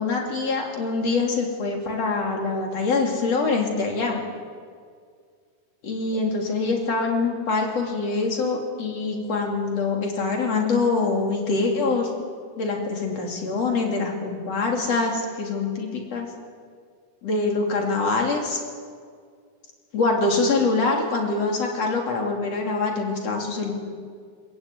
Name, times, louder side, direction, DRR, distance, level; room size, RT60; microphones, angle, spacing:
voice 1, 0.0-4.2 5.8-12.1 12.6-16.3 17.2-18.6 19.9-23.7, left 3 dB, 45° left, 0 dB, 4.1 m, -24 dB
26.0 x 15.0 x 9.5 m, 2.1 s
omnidirectional pair, 4.1 m